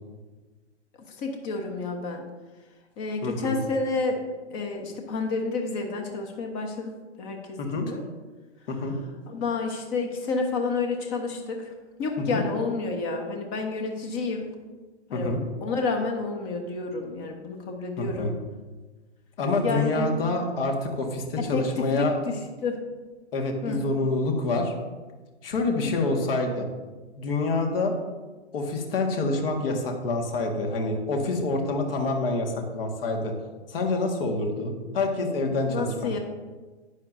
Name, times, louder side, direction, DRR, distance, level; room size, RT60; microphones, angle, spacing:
voice 1, 1.2-2.2 3.0-4.2 4.5-8.0 9.3-11.7 12.0-14.5 15.1-18.3 19.6-20.1 21.4-22.8 23.6-23.8 25.6-25.9 35.7-36.2, left 3 dB, 35° left, 3 dB, 1.3 m, -30 dB
voice 2, 3.2-3.6 7.6-7.9 8.7-8.9 12.3-12.4 15.1-15.4 18.0-18.3 19.4-22.1 23.3-24.7 25.4-26.7 27.2-27.9 28.5-33.3 33.7-36.2, left 2 dB, 55° left, 2 dB, 1.9 m, -27 dB
11.5 x 9.1 x 2.7 m, 1.3 s
hypercardioid pair, 120°, 35 cm